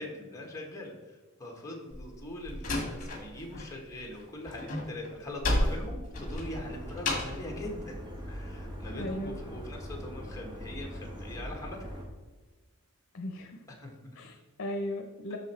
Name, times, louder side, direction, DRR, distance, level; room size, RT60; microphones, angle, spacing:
voice 1, 0.0-8.0 8.3-11.9 13.7-14.1 15.3-15.4, left 1 dB, 15° left, 0 dB, 1.4 m, -42 dB
Slam, 1.9-3.7 4.0-7.5, left 1 dB, 40° left, 1.8 m, -32 dB
sound 1, 6.1-12.0, equal, 20° right, 1.2 m, -41 dB
voice 2, 8.9-9.4 13.1-13.5 14.2-15.4, left 1 dB, 60° left, 4 dB, 0.7 m, -37 dB
6.3 x 6.2 x 4.3 m, 1.3 s
head